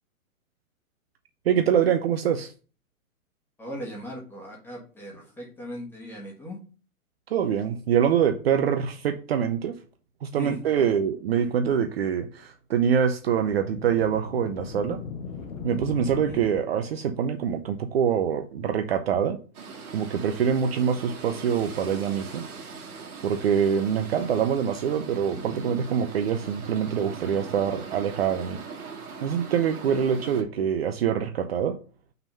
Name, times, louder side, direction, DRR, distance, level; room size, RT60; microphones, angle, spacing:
voice 1, 1.5-2.5 7.3-9.7 10.2-15.0 15.6-19.4 19.9-22.4 23.2-28.6 29.2-31.7, right 8 dB, 45° right, 0.6 m, -25 dB
voice 2, 3.6-6.6 10.3-10.9 16.2-16.4 29.8-30.0, left 1 dB, 5° left, 1.4 m, -38 dB
sound 1, 13.3-17.1, left 5 dB, 65° left, 1.2 m, -38 dB
sound 2, 19.5-30.4, right 4 dB, 90° right, 1.8 m, -41 dB
5.9 x 3.6 x 5.4 m
hypercardioid pair, 155°, 43 cm